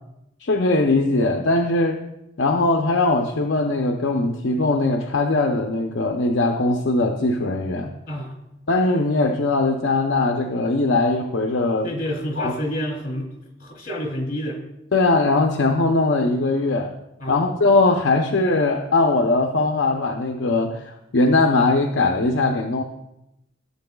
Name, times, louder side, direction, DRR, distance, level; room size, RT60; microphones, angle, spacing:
voice 1, 0.4-2.0 2.4-7.9 8.7-11.9 12.4-12.5 14.9-16.9 17.3-22.8, left 2 dB, 65° left, 3 dB, 0.7 m, -20 dB
voice 2, 11.8-13.3 13.6-14.6 17.2-17.4, equal, 45° left, 0 dB, 2.8 m, -28 dB
14.5 x 7.1 x 2.3 m, 0.87 s
head